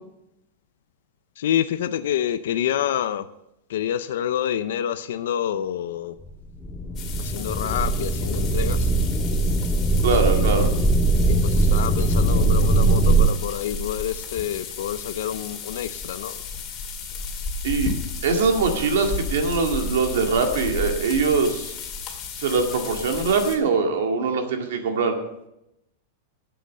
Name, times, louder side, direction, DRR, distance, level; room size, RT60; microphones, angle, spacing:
voice 1, 1.4-3.2 3.7-6.1 7.3-8.8 11.7-16.3, left 10 dB, 75° left, 10 dB, 0.5 m, -27 dB
sound 1, 6.3-6.4 6.6-13.3, right 2 dB, 5° left, 0.8 m, -20 dB
sound 2, 7.0-23.6, left 4 dB, 25° left, 2.0 m, -33 dB
voice 2, 10.0-10.7 17.6-17.9 18.2-21.7 22.4-25.1, right 4 dB, 75° right, 4 dB, 2.0 m, -22 dB
11.5 x 7.8 x 6.5 m, 0.85 s
supercardioid pair, 170°, 0 cm